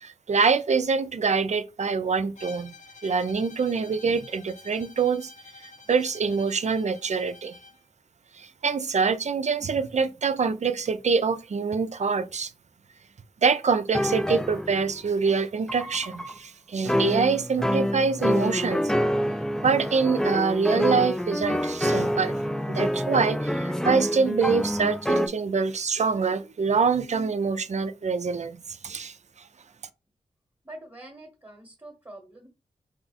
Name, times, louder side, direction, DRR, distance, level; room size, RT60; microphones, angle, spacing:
voice 1, 0.0-2.7 3.0-5.3 5.9-7.5 8.3-12.5 13.4-18.9 19.6-22.4 22.7-29.2, right 5 dB, 55° right, 0.5 m, -25 dB
Bowed string instrument, 2.3-7.8, left 3 dB, 55° left, 0.7 m, -49 dB
sound 1, 13.9-15.0 15.7-16.4 16.9-25.3, equal, 5° left, 0.4 m, -26 dB
voice 2, 30.6-32.5, right 1 dB, 20° right, 1.1 m, -45 dB
3.4 x 2.3 x 4.0 m
cardioid pair, 40°, 14 cm